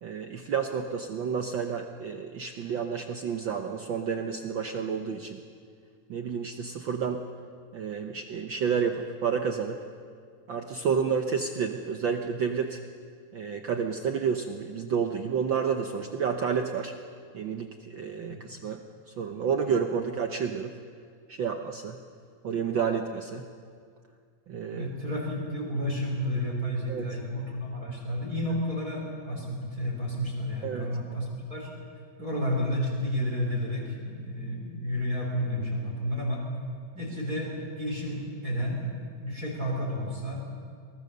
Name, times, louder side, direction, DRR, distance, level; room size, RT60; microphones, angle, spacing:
voice 1, 0.0-5.4 6.1-7.2 7.7-9.8 10.5-12.8 13.3-16.9 17.3-18.8 19.1-20.7 21.3-22.0 22.4-23.5 24.5-24.9 26.9-27.2 30.6-30.9, right 6 dB, 75° right, 5 dB, 1.0 m, -30 dB
voice 2, 24.7-31.7 32.2-36.4 36.9-38.8 39.2-40.4, equal, 30° right, -3 dB, 4.3 m, -31 dB
23.5 x 19.0 x 6.7 m, 2.1 s
omnidirectional pair, 3.3 m